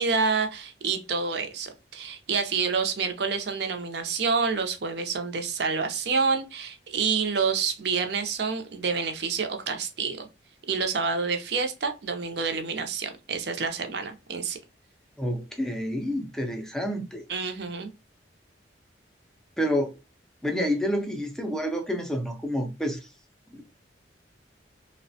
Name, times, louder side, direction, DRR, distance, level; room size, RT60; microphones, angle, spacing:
voice 1, 0.0-10.3 10.7-14.6 17.3-17.9, right 5 dB, 60° right, 0.5 m, -28 dB
voice 2, 15.2-17.2 19.6-19.9 20.4-23.1 23.5-23.6, equal, 5° left, 0.4 m, -28 dB
3.1 x 2.1 x 2.6 m
head